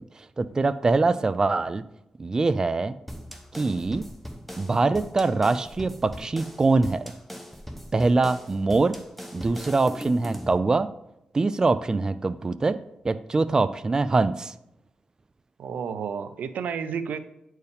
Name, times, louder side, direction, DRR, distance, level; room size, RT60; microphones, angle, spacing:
voice 1, 0.0-1.8 2.2-2.9 3.5-4.0 4.5-7.0 7.9-9.0 9.3-10.9 11.3-12.8 13.0-14.5, right 3 dB, 25° right, 13 dB, 0.3 m, -23 dB
sound 1, 3.1-10.6, equal, 5° left, 0.8 m, -40 dB
voice 2, 15.6-17.2, right 7 dB, 85° right, 11 dB, 0.5 m, -31 dB
9.4 x 4.5 x 3.4 m, 0.84 s
cardioid pair, 100°, 3 cm